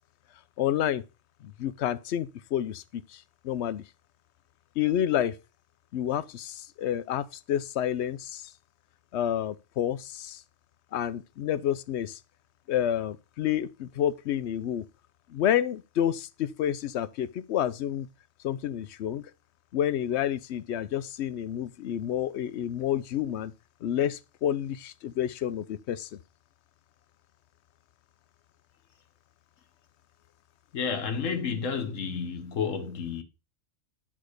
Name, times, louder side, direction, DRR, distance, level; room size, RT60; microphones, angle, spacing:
voice 1, 0.6-1.0 1.4-3.8 4.8-5.4 5.9-8.5 9.1-10.4 10.9-12.2 12.7-14.8 15.3-18.1 18.4-19.3 19.7-23.5 23.8-26.2, left 10 dB, 65° left, 0.8 m, -29 dB
voice 2, 30.7-33.2, left 6 dB, 85° left, 1.4 m, -31 dB
10.0 x 3.7 x 6.5 m
omnidirectional pair, 1.3 m